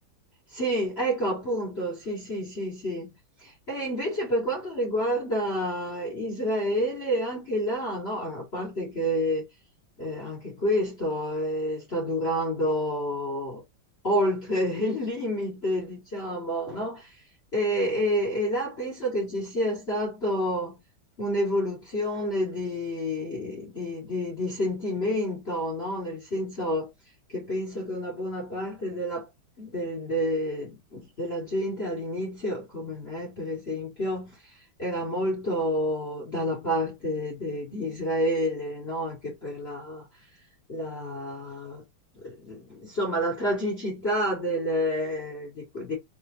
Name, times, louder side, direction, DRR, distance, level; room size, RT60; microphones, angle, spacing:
voice 1, 0.5-3.1 3.4-9.4 10.0-13.6 14.0-17.1 17.5-20.8 21.2-26.9 27.3-29.3 29.6-34.4 34.8-40.1 40.7-41.8 42.1-46.0, equal, 30° left, 1.7 m, -29 dB
3.9 x 3.4 x 2.6 m
omnidirectional pair, 2.4 m